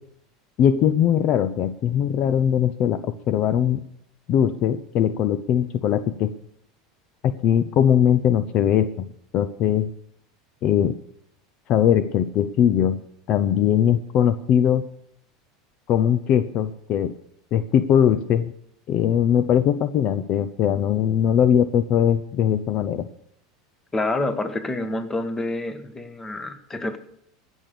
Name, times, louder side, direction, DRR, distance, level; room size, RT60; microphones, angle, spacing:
voice 1, 0.6-3.8 4.3-6.3 7.2-9.1 9.3-9.9 10.6-10.9 11.7-13.0 13.3-14.8 15.9-17.1 17.5-18.5 18.9-23.1, left 9 dB, 50° left, 12 dB, 0.6 m, -20 dB
voice 2, 23.9-27.0, left 2 dB, 15° left, 9 dB, 1.4 m, -27 dB
16.0 x 6.3 x 6.9 m, 0.71 s
hypercardioid pair, 100°, 2 cm